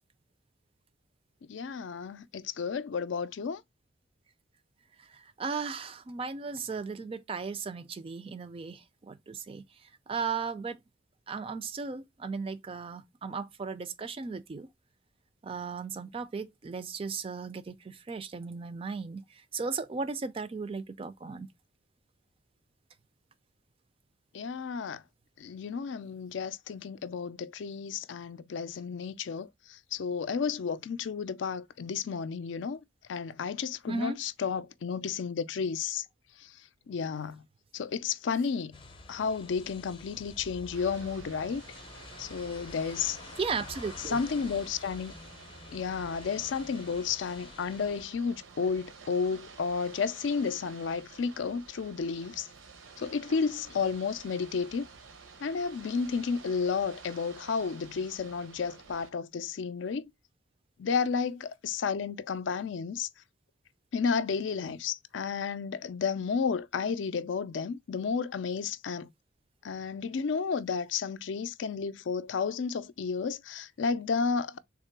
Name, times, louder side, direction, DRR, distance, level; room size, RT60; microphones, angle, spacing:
voice 1, 1.5-3.6 24.3-25.0 25.4-32.8 33.1-36.0 36.4-36.5 36.9-37.4 37.7-38.8 39.1-41.6 42.2-43.2 44.1-45.1 45.7-52.5 53.0-54.8 55.4-60.1 60.8-63.1 63.9-69.1 69.6-74.6, left 5 dB, 70° left, 0.4 m, -32 dB
voice 2, 5.0-10.8 11.3-14.7 15.4-21.5 33.9-34.2 43.4-44.2, right 5 dB, 30° right, 0.3 m, -36 dB
sound 1, 38.7-48.0, left 3 dB, 25° left, 0.6 m, -48 dB
Ocean / Boat Water vehicle, 40.7-59.1, right 5 dB, 85° right, 0.8 m, -51 dB
3.6 x 2.9 x 4.5 m
head